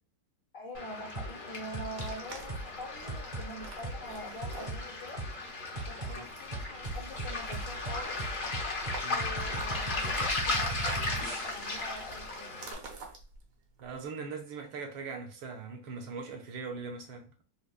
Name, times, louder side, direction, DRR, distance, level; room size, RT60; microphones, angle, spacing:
voice 1, 0.5-5.2 5.7-8.2 9.1-12.6, left 1 dB, 60° left, 0.9 m, -44 dB
Waves surf, 0.7-12.7, left 2 dB, 85° left, 0.4 m, -36 dB
sound 1, 1.1-1.3 1.7-2.1 2.5-2.7 3.1-3.5 3.8-4.0 4.4-4.8 5.2-5.3 5.7-6.1 6.5-11.8, right 2 dB, 40° right, 0.6 m, -38 dB
sound 2, 1.9-14.1, right 3 dB, 60° right, 1.0 m, -49 dB
voice 2, 13.8-17.4, right 4 dB, 75° right, 1.5 m, -41 dB
5.0 x 2.1 x 2.3 m
omnidirectional pair, 2.2 m